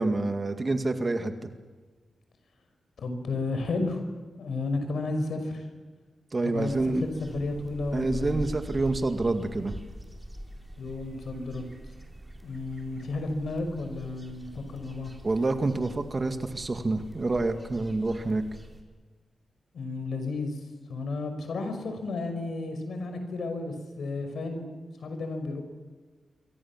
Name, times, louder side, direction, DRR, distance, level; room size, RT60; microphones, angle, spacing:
voice 1, 0.0-1.5 6.3-7.0 7.9-9.8 15.2-18.4, right 2 dB, 30° right, 8 dB, 2.1 m, -27 dB
voice 2, 3.0-4.0 4.3-5.7 6.4-6.7 7.0-8.4 10.8-11.7 12.4-15.1 19.7-24.7 25.0-25.6, left 3 dB, 75° left, 7 dB, 5.5 m, -32 dB
sound 1, 6.6-18.8, right 1 dB, 10° right, 4.3 m, -44 dB
27.5 x 24.5 x 7.4 m, 1.4 s
wide cardioid pair, 130°, 0 cm